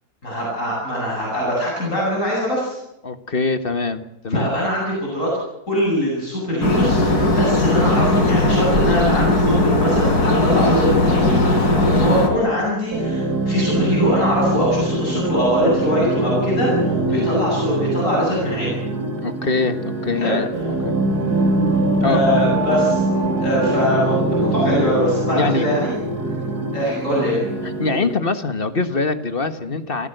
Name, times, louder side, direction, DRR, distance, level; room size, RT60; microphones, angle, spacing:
voice 1, 0.2-2.8 4.3-5.3 5.7-18.8 20.2-20.4 22.0-23.0 23.4-25.9 26.7-27.4, equal, 55° left, -4 dB, 8.6 m, -22 dB
voice 2, 3.0-4.5 17.1-17.3 19.2-20.5 20.8-20.9 22.0-22.2 25.3-25.6 27.6-30.1, left 3 dB, 35° left, 10 dB, 1.6 m, -23 dB
sound 1, 6.6-12.3, left 2 dB, 85° left, 5.4 m, -17 dB
sound 2, 12.9-28.2, right 2 dB, 85° right, 3.5 m, -22 dB
30.0 x 15.5 x 8.0 m, 0.86 s
omnidirectional pair, 1.6 m